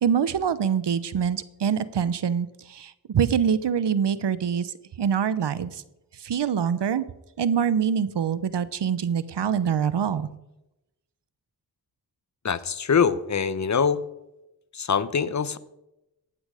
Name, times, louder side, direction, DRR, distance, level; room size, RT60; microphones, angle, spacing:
voice 1, 0.0-5.8 6.2-7.1 7.4-10.3, right 7 dB, 65° right, 16 dB, 0.9 m, -25 dB
voice 2, 12.4-14.0 14.7-15.6, left 6 dB, 40° left, 15 dB, 0.9 m, -23 dB
15.0 x 8.8 x 5.0 m, 0.92 s
cardioid pair, 60°, 44 cm